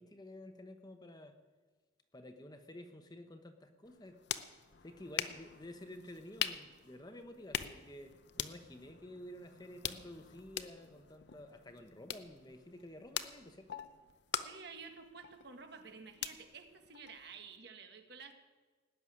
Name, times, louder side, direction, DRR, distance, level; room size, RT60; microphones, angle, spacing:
voice 1, 0.0-1.3 2.1-4.2 4.8-13.8, left 1 dB, 20° left, 7 dB, 1.0 m, -51 dB
sound 1, 3.8-17.6, left 9 dB, 60° left, 0.7 m, -44 dB
voice 2, 14.4-18.3, right 5 dB, 60° right, 6 dB, 1.6 m, -51 dB
18.0 x 6.9 x 9.8 m, 1.3 s
head